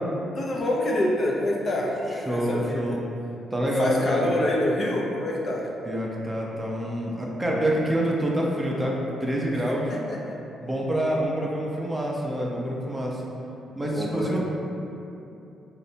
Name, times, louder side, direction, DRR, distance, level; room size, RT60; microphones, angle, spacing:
voice 1, 0.4-3.0 3.8-5.7 9.9-10.4 13.8-14.4, left 1 dB, 45° left, -2 dB, 0.5 m, -26 dB
voice 2, 2.3-3.0 3.5-4.2 5.8-10.0 10.6-13.2 13.7-14.4, right 1 dB, 10° right, -3 dB, 0.5 m, -27 dB
4.0 x 2.1 x 2.7 m, 2.8 s
cardioid pair, 90°, 0 cm